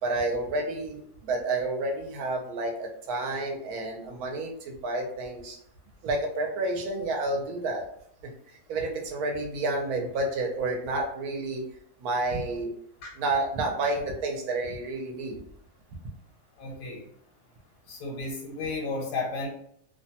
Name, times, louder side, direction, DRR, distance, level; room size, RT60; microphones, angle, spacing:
voice 1, 0.0-5.6 6.0-7.8 8.5-11.6 12.0-12.7 13.2-15.4, right 2 dB, 70° right, 1 dB, 1.1 m, -30 dB
voice 2, 16.6-17.0 17.9-19.5, left 3 dB, 90° left, -1 dB, 1.3 m, -33 dB
2.8 x 2.2 x 2.7 m, 0.69 s
omnidirectional pair, 1.7 m